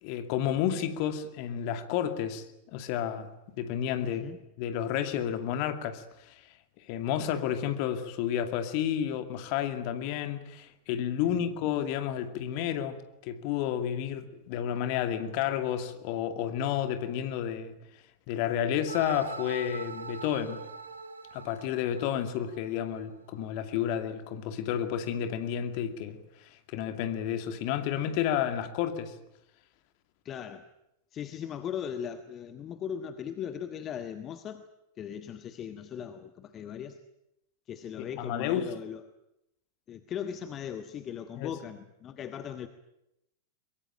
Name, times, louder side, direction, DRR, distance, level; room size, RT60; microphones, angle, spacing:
voice 1, 0.0-4.2 4.6-6.4 6.9-17.7 18.3-20.6 21.3-29.1 38.0-38.6 41.4-41.5, left 10 dB, 45° left, 2.4 m, -31 dB
voice 2, 4.0-4.4 11.2-11.5 30.2-30.7 31.1-34.6 35.0-37.0 37.7-39.0 39.9-42.7, left 8 dB, 30° left, 1.3 m, -38 dB
sound 1, 18.9-22.9, right 4 dB, 75° right, 1.4 m, -42 dB
23.5 x 22.0 x 9.1 m
figure-of-eight pair, 90°, 0 cm